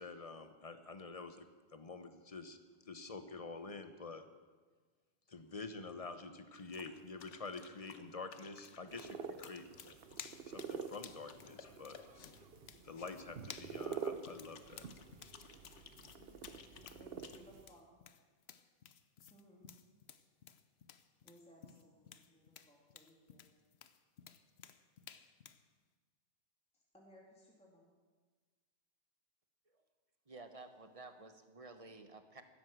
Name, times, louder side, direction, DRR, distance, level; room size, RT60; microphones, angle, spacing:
voice 1, 0.0-2.6 2.8-4.2 5.3-9.7 10.4-12.0 12.8-14.9, left 3 dB, 35° left, 9 dB, 1.0 m, -48 dB
sound 1, 6.5-17.4, left 6 dB, 85° left, 1.2 m, -59 dB
sound 2, 8.6-25.6, left 8 dB, 70° left, 1.0 m, -56 dB
sound 3, 8.9-17.7, right 6 dB, 60° right, 1.0 m, -48 dB
voice 2, 16.9-17.9 19.3-19.7 21.2-23.6 26.7-27.9, equal, 5° left, -3 dB, 2.5 m, -62 dB
voice 3, 30.3-32.4, right 3 dB, 30° right, 8 dB, 1.1 m, -53 dB
16.0 x 13.0 x 6.2 m, 1.4 s
omnidirectional pair, 1.2 m